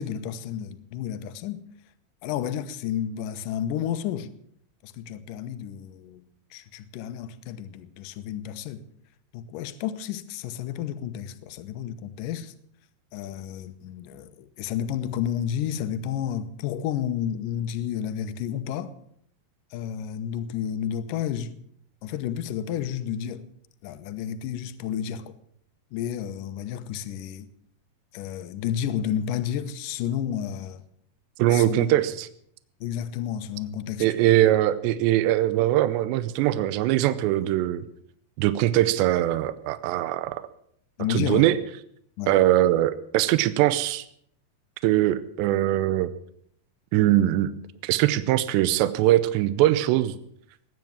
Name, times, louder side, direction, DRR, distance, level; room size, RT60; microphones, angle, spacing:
voice 1, 0.0-1.6 2.2-4.3 4.8-8.8 9.3-12.5 13.1-18.9 19.7-21.6 22.0-23.5 23.8-25.3 25.9-27.5 28.1-30.8 31.5-32.0 32.8-34.3 41.0-41.5 42.2-42.4, left 9 dB, 75° left, 2.1 m, -31 dB
voice 2, 31.4-32.3 34.0-37.8 38.4-40.4 41.1-41.6 42.3-44.0 44.8-46.1 46.9-47.5 47.8-50.1, right 14 dB, 85° right, 2.9 m, -21 dB
20.0 x 9.4 x 7.3 m
omnidirectional pair, 5.0 m